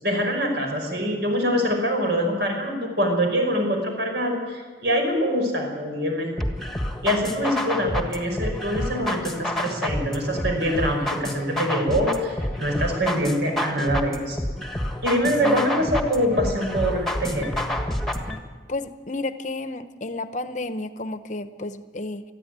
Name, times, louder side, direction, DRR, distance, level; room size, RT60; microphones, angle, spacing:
voice 1, 0.0-6.3 7.0-14.4 15.0-17.5, equal, 70° right, 3 dB, 5.7 m, -24 dB
sound 1, 6.4-18.4, left 1 dB, ahead, 1.5 m, -29 dB
voice 2, 18.7-22.2, left 2 dB, 40° left, 11 dB, 0.9 m, -31 dB
20.5 x 14.0 x 9.5 m, 1.5 s
head